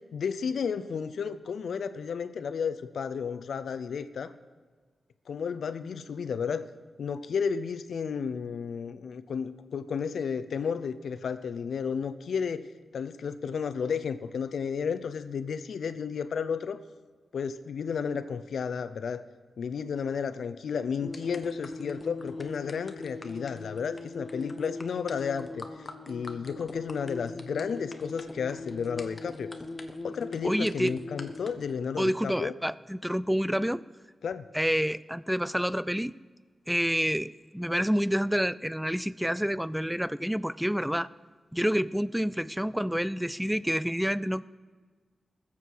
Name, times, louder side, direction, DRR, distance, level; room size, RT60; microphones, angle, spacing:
voice 1, 0.0-4.3 5.3-6.6 7.0-12.6 12.9-16.8 17.3-19.2 19.6-25.7 26.1-29.5 30.0-32.5 34.2-34.4, left 6 dB, 80° left, 12 dB, 0.6 m, -32 dB
sound 1, 21.0-31.8, left 2 dB, 25° left, 1.0 m, -40 dB
voice 2, 30.4-30.9 32.0-33.8 34.5-36.1 36.7-41.1 41.5-44.4, equal, 5° right, 18 dB, 0.3 m, -28 dB
21.0 x 7.2 x 4.7 m, 1.4 s
wide cardioid pair, 115°, 0 cm